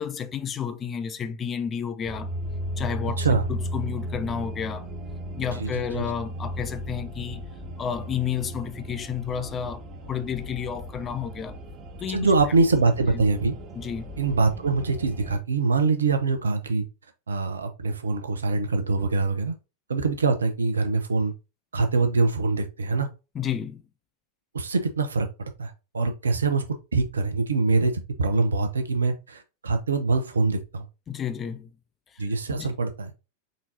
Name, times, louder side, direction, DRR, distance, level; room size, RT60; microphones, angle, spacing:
voice 1, 0.0-2.3 2.8-4.9 5.4-7.4 7.8-11.6 12.0-12.3 13.1-13.2 13.7-14.1 23.3-23.8 31.1-31.7 32.1-32.2 32.5-32.7, left 7 dB, 25° left, 0.5 m, -31 dB
sound 1, 2.0-15.4, equal, 30° right, 0.7 m, -36 dB
voice 2, 5.6-6.1 12.1-13.5 14.2-16.8 17.3-19.5 19.9-21.3 21.7-23.1 24.5-25.3 25.6-26.6 26.9-30.9 32.2-33.1, right 3 dB, 70° right, 0.8 m, -24 dB
4.2 x 3.8 x 2.7 m
figure-of-eight pair, 90°, 0 cm